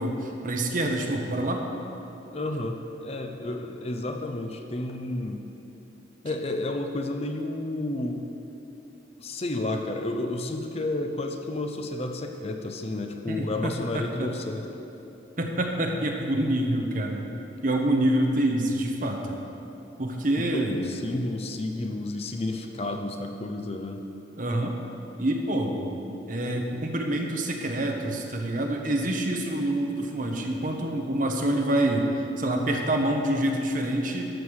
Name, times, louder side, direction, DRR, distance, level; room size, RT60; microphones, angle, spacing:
voice 1, 0.0-1.6 13.3-14.3 15.4-17.2 17.6-19.4 20.0-20.9 24.4-24.7 25.2-25.9 26.3-34.3, right 1 dB, 45° right, 2 dB, 1.1 m, -26 dB
voice 2, 2.3-5.4 6.2-8.3 9.2-14.7 20.4-24.0, left 2 dB, 35° left, 4 dB, 0.6 m, -31 dB
13.0 x 6.7 x 6.4 m, 3.0 s
head